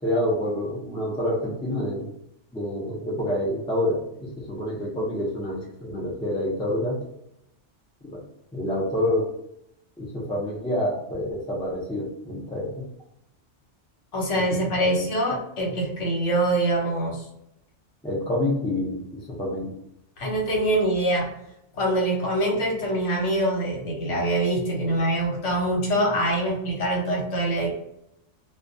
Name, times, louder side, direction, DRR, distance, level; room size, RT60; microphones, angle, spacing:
voice 1, 0.0-2.1 2.5-7.0 8.0-8.2 8.5-9.3 10.0-12.8 14.8-15.0 18.0-19.7, left 1 dB, 5° left, -4 dB, 0.4 m, -27 dB
voice 2, 14.1-17.3 20.2-21.3 21.7-27.7, right 1 dB, 75° left, -1 dB, 1.1 m, -24 dB
2.2 x 2.2 x 2.6 m, 0.79 s
omnidirectional pair, 1.3 m